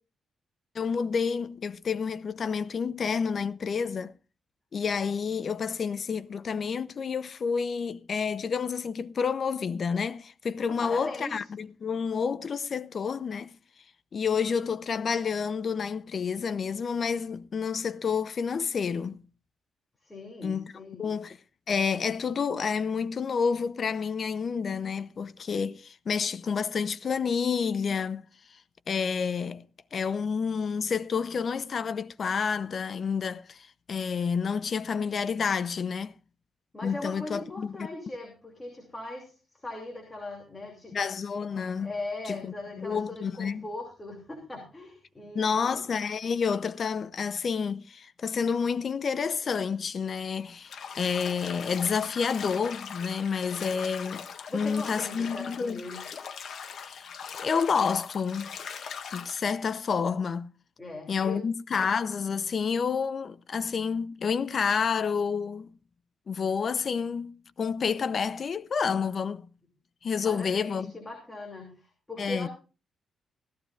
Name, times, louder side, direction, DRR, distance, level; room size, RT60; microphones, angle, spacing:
voice 1, 0.7-4.1 4.7-13.5 14.1-19.2 20.4-20.7 21.0-21.4 21.7-28.3 28.9-29.6 29.9-36.1 36.8-37.9 40.9-41.9 42.3-42.4 42.8-43.7 45.3-54.3 54.5-55.8 56.8-57.1 57.4-58.5 59.1-60.4 61.1-65.7 66.3-69.4 70.0-70.9 72.2-72.5, left 6 dB, 40° left, 0.7 m, -29 dB
voice 2, 10.7-11.5 20.0-21.1 36.7-41.0 41.8-45.8 54.5-56.0 60.8-61.4 70.2-72.5, left 2 dB, 15° left, 2.8 m, -40 dB
Bathtub (filling or washing), 50.6-59.4, left 7 dB, 55° left, 1.5 m, -41 dB
16.5 x 14.0 x 2.5 m
wide cardioid pair, 155°, 0 cm